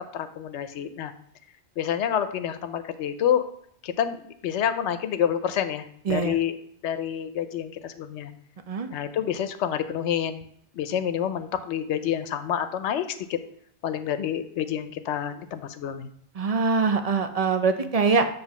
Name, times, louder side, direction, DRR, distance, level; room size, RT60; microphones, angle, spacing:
voice 1, 0.1-1.1 1.8-3.4 3.8-6.6 6.8-8.3 8.9-10.4 10.7-13.4 13.8-16.1, left 9 dB, 80° left, 11 dB, 0.9 m, -28 dB
voice 2, 6.1-6.4 8.7-8.9 16.3-18.3, right 4 dB, 50° right, 7 dB, 0.4 m, -23 dB
7.4 x 3.1 x 6.0 m, 0.69 s
omnidirectional pair, 1.2 m